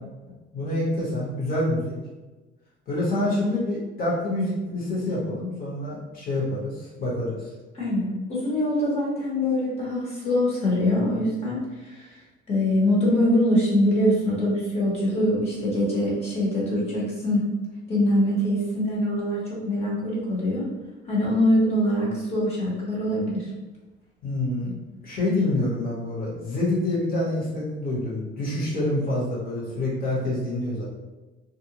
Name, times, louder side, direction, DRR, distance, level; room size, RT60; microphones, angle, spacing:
voice 1, 0.5-2.0 2.9-7.5 24.2-24.8 25.0-30.8, left 1 dB, 45° left, -6 dB, 1.1 m, -27 dB
voice 2, 7.7-12.1 12.5-17.5 17.9-20.7 21.1-23.5, left 1 dB, 30° left, -5 dB, 0.9 m, -23 dB
2.5 x 2.1 x 2.9 m, 1.2 s
cardioid pair, 150°, 21 cm